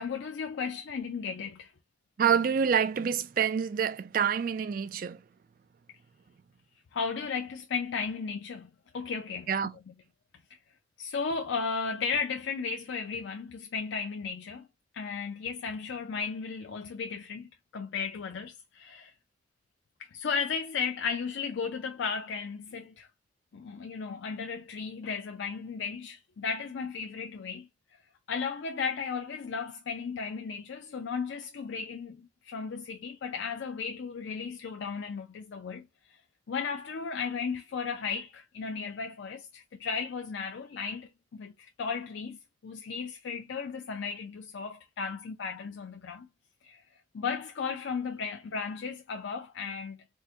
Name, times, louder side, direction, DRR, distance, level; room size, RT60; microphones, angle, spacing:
voice 1, 0.0-1.7 6.9-9.5 10.5-10.6 11.0-14.7 14.9-19.1 20.0-23.1 23.5-27.7 28.3-36.2 36.5-46.3 46.6-46.8 47.1-50.0, left 5 dB, 90° left, 0.4 m, -35 dB
voice 2, 2.2-5.2 9.5-9.7, right 7 dB, 50° right, 0.3 m, -27 dB
3.6 x 2.1 x 2.7 m
head